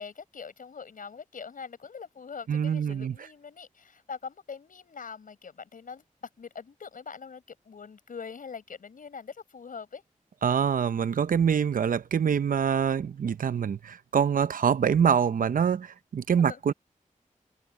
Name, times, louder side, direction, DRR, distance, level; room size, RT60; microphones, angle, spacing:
voice 1, 0.0-10.0 16.4-16.6, left 6 dB, 90° left, 5.8 m, -43 dB
voice 2, 2.5-3.1 10.4-16.7, right 7 dB, 90° right, 0.7 m, -25 dB
wide cardioid pair, 120°, 14 cm